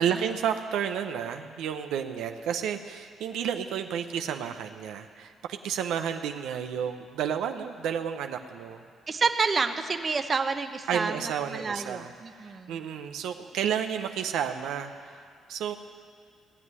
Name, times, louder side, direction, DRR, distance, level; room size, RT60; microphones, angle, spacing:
voice 1, 0.0-8.8 10.9-15.2 15.5-15.7, right 8 dB, 85° right, 6 dB, 0.8 m, -31 dB
voice 2, 9.1-12.8, right 4 dB, 35° right, 7 dB, 0.9 m, -29 dB
18.5 x 7.5 x 9.7 m, 2.3 s
cardioid pair, 90°, 0 cm